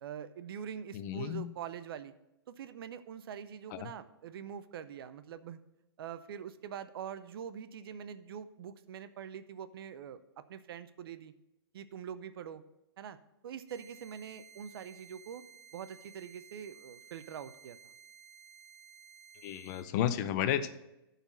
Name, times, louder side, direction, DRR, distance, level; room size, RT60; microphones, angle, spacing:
voice 1, 0.0-2.1 2.5-5.6 6.0-11.3 11.7-12.6 13.0-13.2 13.4-15.4 15.7-17.8, right 8 dB, 65° right, 12 dB, 0.6 m, -44 dB
voice 2, 0.9-1.5 3.7-3.9 19.4-20.7, left 10 dB, 40° left, 12 dB, 0.6 m, -32 dB
sound 1, 13.7-19.8, right 7 dB, 45° right, 1.3 m, -56 dB
11.5 x 4.1 x 6.0 m, 0.92 s
hypercardioid pair, 130°, 13 cm